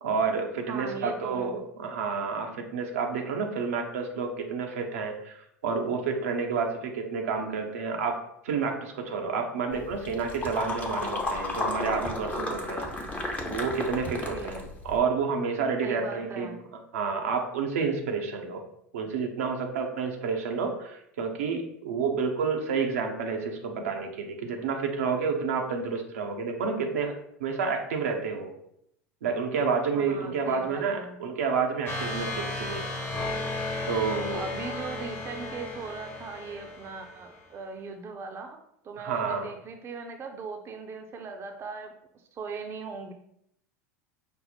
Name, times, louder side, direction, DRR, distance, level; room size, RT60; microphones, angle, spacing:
voice 1, 0.0-8.2 8.4-12.9 13.5-16.5 16.9-18.6 18.9-27.1 27.4-28.5 29.2-32.8 33.9-34.4 39.0-39.5, right 5 dB, 70° right, 2 dB, 0.7 m, -29 dB
voice 2, 0.7-1.6 14.3-14.6 15.8-16.6 29.9-31.2 34.3-38.6 38.8-43.1, right 4 dB, 35° right, 4 dB, 0.6 m, -39 dB
sound 1, 9.7-15.0, left 2 dB, 20° left, 0.8 m, -33 dB
sound 2, 31.9-37.4, left 2 dB, 35° left, 1.2 m, -34 dB
5.3 x 2.1 x 4.1 m, 0.74 s
figure-of-eight pair, 75°, 8 cm